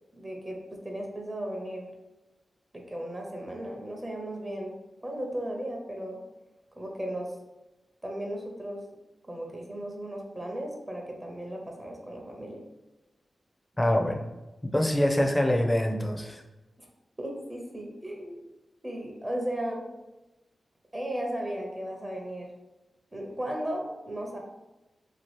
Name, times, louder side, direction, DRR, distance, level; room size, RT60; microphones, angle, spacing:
voice 1, 0.1-1.9 2.7-6.2 6.8-7.3 8.0-8.8 9.3-12.6 16.8-16.9 17.2-18.4 18.8-19.9 20.9-22.5 23.1-24.4, right 1 dB, 25° right, 0 dB, 0.7 m, -36 dB
voice 2, 13.8-14.2 14.7-16.4, left 1 dB, 15° left, 2 dB, 0.5 m, -24 dB
2.9 x 2.3 x 3.2 m, 1.0 s
cardioid pair, 60°, 0 cm